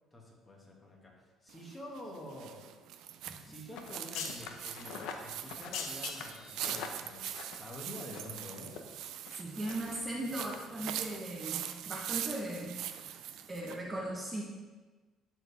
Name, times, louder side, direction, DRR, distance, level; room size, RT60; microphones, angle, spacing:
voice 1, 0.1-2.6 3.4-8.9, left 1 dB, 20° left, -2 dB, 1.9 m, -48 dB
sound 1, 1.5-13.8, right 11 dB, 75° right, 0.5 m, -42 dB
sound 2, 3.7-8.4 8.7-8.8 9.3-10.0 10.4-10.6 10.9-11.1 11.4-11.5, left 6 dB, 80° left, 0.8 m, -43 dB
voice 2, 9.3-12.8 13.5-14.4, right 1 dB, 20° right, -2 dB, 1.1 m, -38 dB
11.5 x 4.5 x 3.6 m, 1.3 s
cardioid pair, 120°, 0 cm